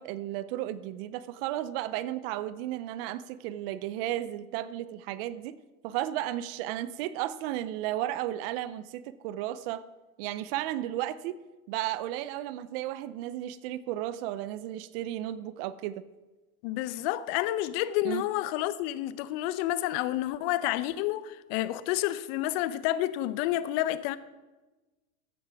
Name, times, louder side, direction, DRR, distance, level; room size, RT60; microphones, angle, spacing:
voice 1, 0.0-5.6 5.8-9.8 10.2-11.4 11.7-16.0 18.0-18.2, right 13 dB, 40° right, 0.5 m, -34 dB
voice 2, 16.6-24.2, left 14 dB, 40° left, 0.7 m, -29 dB
14.0 x 9.3 x 3.5 m
hypercardioid pair, 130°, 45 cm